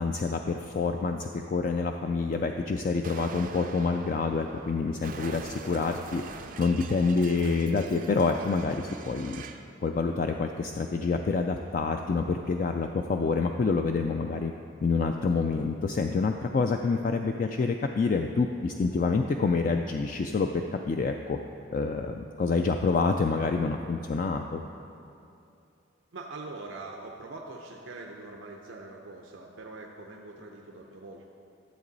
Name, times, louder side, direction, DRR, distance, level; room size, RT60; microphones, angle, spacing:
voice 1, 0.0-9.4 9.8-14.5 14.8-21.4 21.7-24.6, left 4 dB, 45° left, 4 dB, 0.3 m, -27 dB
Explosion, 3.0-9.7, right 4 dB, 45° right, 0.4 m, -44 dB
voice 2, 26.1-31.3, right 3 dB, 90° right, 0 dB, 0.7 m, -43 dB
12.5 x 7.5 x 4.0 m, 2.7 s
head